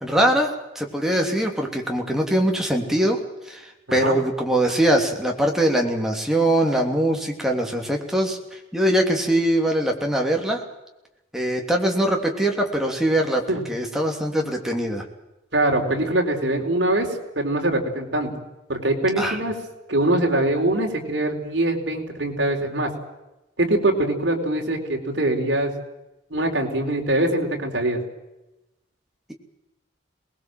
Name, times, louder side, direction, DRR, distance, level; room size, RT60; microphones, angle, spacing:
voice 1, 0.0-3.2 3.5-3.6 3.9-10.6 11.3-13.4 13.7-15.0 19.2-19.4, right 1 dB, ahead, 1 dB, 3.1 m, -22 dB
voice 2, 15.5-17.1 17.4-18.3 18.7-19.6 19.9-22.9 23.6-25.7 26.3-28.0, right 1 dB, 65° right, 1 dB, 4.3 m, -23 dB
23.5 x 20.5 x 7.8 m, 0.98 s
head